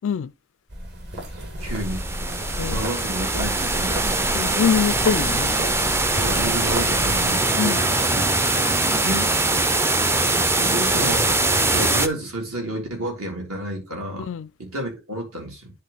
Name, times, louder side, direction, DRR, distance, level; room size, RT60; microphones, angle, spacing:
sound 1, 0.7-7.3, equal, 50° right, 1.7 m, -31 dB
voice 1, 1.6-2.0 2.7-4.1 6.2-8.7 9.0-9.6 10.5-14.3 14.6-15.7, right 1 dB, 75° right, 3.4 m, -31 dB
sound 2, 1.7-12.1, right 2 dB, 10° right, 0.4 m, -22 dB
voice 2, 4.3-5.6 7.6-7.8 14.2-14.5, left 7 dB, 60° left, 0.3 m, -23 dB
10.0 x 3.6 x 3.9 m
head